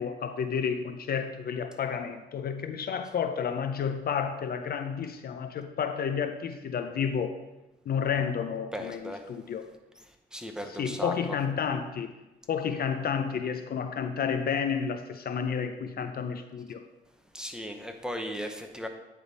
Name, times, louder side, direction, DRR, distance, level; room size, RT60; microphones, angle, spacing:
voice 1, 0.0-7.4 7.9-9.7 10.7-12.2 12.5-16.8, left 7 dB, 50° left, 8 dB, 0.5 m, -31 dB
voice 2, 8.7-9.2 10.3-11.1 17.3-18.9, equal, 5° right, 4 dB, 0.7 m, -36 dB
9.3 x 3.5 x 4.0 m, 1.0 s
cardioid pair, 90°, 20 cm